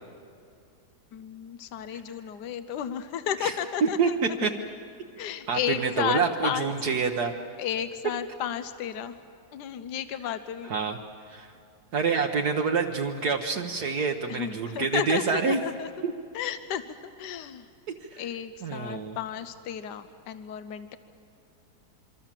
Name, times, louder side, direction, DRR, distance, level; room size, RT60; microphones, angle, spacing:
voice 1, 1.1-4.5 5.2-6.7 7.6-9.2 9.5-10.7 14.3-15.9 16.3-17.7 18.2-21.0, left 9 dB, 80° left, 11 dB, 1.4 m, -33 dB
voice 2, 5.5-7.3 10.7-11.0 11.3-11.5 11.9-15.6 16.0-16.1 18.0-18.2 18.6-19.2, right 5 dB, 70° right, 3 dB, 1.5 m, -27 dB
26.0 x 24.5 x 7.5 m, 2.4 s
omnidirectional pair, 1.8 m